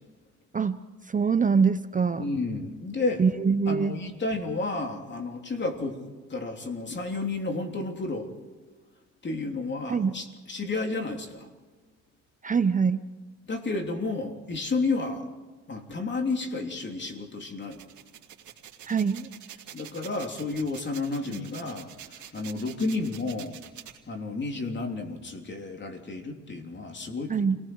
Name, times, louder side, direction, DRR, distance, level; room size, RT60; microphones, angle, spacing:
voice 1, 1.1-2.3 3.2-4.0 9.9-10.1 12.4-13.0 18.9-19.3 21.3-21.4 27.3-27.6, right 5 dB, 25° right, 11 dB, 0.7 m, -24 dB
voice 2, 2.2-3.2 3.7-8.3 9.2-11.5 13.5-15.3 15.7-17.9 19.7-23.6 24.1-27.3, left 3 dB, 35° left, 4 dB, 3.3 m, -31 dB
sound 1, 17.6-24.0, right 11 dB, 75° right, 2.5 m, -46 dB
29.0 x 19.5 x 4.7 m, 1.3 s
cardioid pair, 90°, 30 cm